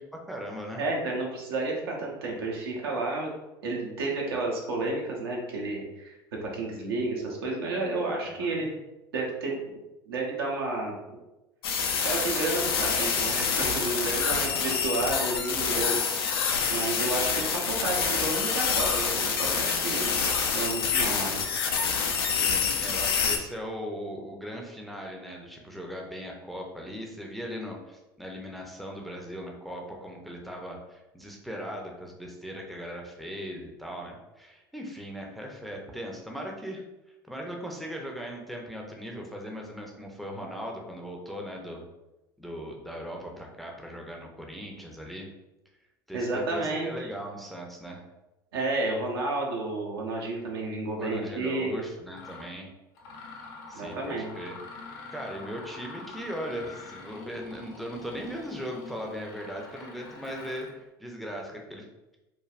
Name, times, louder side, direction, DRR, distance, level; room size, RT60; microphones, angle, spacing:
voice 1, 0.1-0.8 8.2-8.7 14.2-14.8 22.2-36.8 37.3-41.8 42.4-45.3 46.1-48.0 51.0-52.7 53.7-54.6 55.1-61.8, equal, ahead, 0 dB, 0.5 m, -39 dB
voice 2, 0.8-3.3 3.6-8.7 9.1-9.8 10.1-11.2 12.0-16.2 16.7-20.1 20.5-21.4 46.1-46.9 48.5-51.8 53.7-54.3, right 2 dB, 75° right, -1 dB, 0.7 m, -31 dB
sound 1, 11.6-23.4, left 6 dB, 80° left, 0.4 m, -27 dB
Mechanisms, 51.5-51.6 52.1-52.5 53.0-60.8, left 3 dB, 65° left, 0.8 m, -45 dB
3.2 x 2.2 x 2.4 m, 0.99 s
hypercardioid pair, 75°, 13 cm